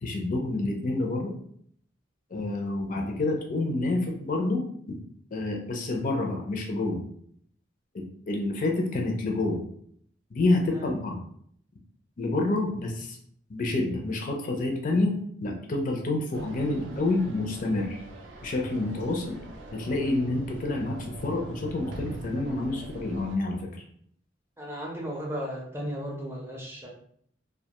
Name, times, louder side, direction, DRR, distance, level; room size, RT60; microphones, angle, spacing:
voice 1, 0.0-1.3 2.3-4.6 5.3-7.0 7.9-9.6 10.3-11.2 12.2-13.2 13.5-15.1 15.4-18.0 18.4-19.4 19.7-21.0 21.2-23.6, left 2 dB, 45° left, 1 dB, 0.4 m, -28 dB
sound 1, 16.3-23.4, right 2 dB, 75° right, 0.4 m, -43 dB
voice 2, 24.6-26.9, equal, 10° right, -2 dB, 0.5 m, -35 dB
2.2 x 2.2 x 2.8 m, 0.64 s
head